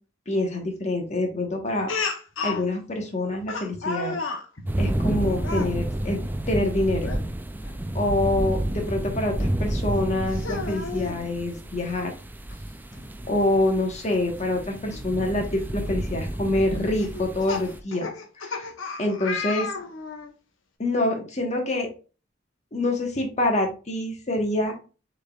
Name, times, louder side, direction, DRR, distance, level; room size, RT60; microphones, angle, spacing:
voice 1, 0.3-1.9 2.4-4.2 4.8-6.2 6.5-7.1 7.9-12.1 13.3-18.1 18.4-18.7 19.0-19.7 20.8-21.9 22.7-24.7, left 1 dB, 35° left, 2 dB, 1.3 m, -26 dB
Speech, 1.9-2.6 3.5-4.4 5.4-5.7 7.0-7.2 7.6-7.7 9.4-9.5 10.3-11.2 12.5-12.6 12.9-13.0 14.9-15.0 15.6-15.9 17.0-20.3, left 4 dB, 90° left, 0.9 m, -32 dB
sound 1, 4.6-17.8, right 1 dB, 10° right, 0.4 m, -30 dB
6.3 x 3.5 x 2.4 m, 0.34 s
head